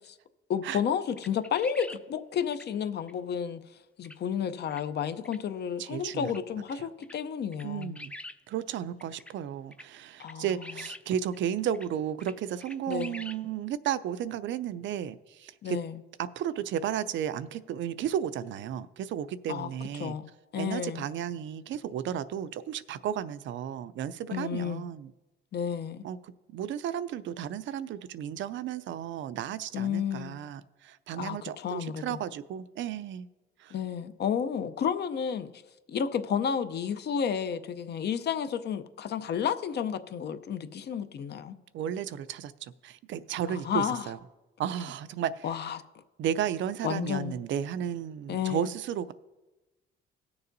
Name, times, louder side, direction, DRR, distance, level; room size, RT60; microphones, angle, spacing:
voice 1, 0.5-3.6 4.0-8.0 10.2-10.5 12.9-13.2 15.6-16.0 19.5-19.7 20.0-21.1 24.3-24.8 25.5-26.0 29.7-30.4 31.1-32.2 33.7-35.5 35.9-41.6 43.5-44.1 45.4-45.8 46.8-47.4 48.3-48.7, left 8 dB, 55° left, 0.6 m, -31 dB
sound 1, 1.2-2.0 2.5-2.7 3.1-3.2 4.0-4.2 4.7-4.8 5.2-5.4 6.3-6.4 6.7-6.8 7.0-7.2 7.5-8.4 9.0-9.3 9.7-9.9 10.2-11.0 11.3-11.4 11.7-11.9 12.2-12.3 12.6-13.4, left 1 dB, 5° left, 0.4 m, -44 dB
voice 2, 5.8-6.3 6.7-6.9 7.6-8.1 8.5-15.8 16.2-20.1 20.6-25.1 26.0-33.3 33.6-33.7 41.7-44.2 44.6-45.5 46.2-49.1, right 9 dB, 70° right, 0.5 m, -33 dB
19.0 x 6.8 x 2.6 m
cardioid pair, 90°, 20 cm